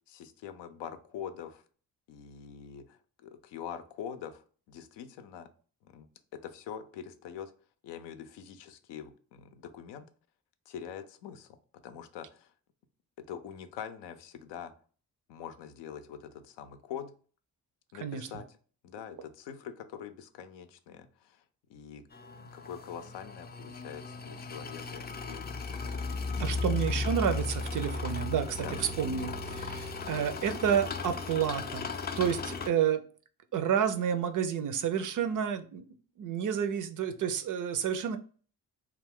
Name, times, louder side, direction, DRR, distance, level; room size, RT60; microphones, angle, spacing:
voice 1, 0.1-1.6 2.1-5.5 5.8-6.1 6.3-7.5 7.8-10.1 10.7-11.5 11.8-12.5 13.3-14.7 15.3-17.1 17.9-18.4 18.8-21.4 21.7-22.0 22.4-26.0 26.5-26.6 28.6-28.8, left 8 dB, 75° left, 9 dB, 0.5 m, -44 dB
voice 2, 18.0-18.4 26.4-31.9 32.2-33.0 33.5-35.8 36.2-38.2, right 8 dB, 50° right, 11 dB, 0.5 m, -30 dB
sound 1, 22.1-32.7, left 3 dB, 25° left, 0.4 m, -36 dB
2.3 x 2.3 x 3.5 m, 0.41 s
hypercardioid pair, 50°, 43 cm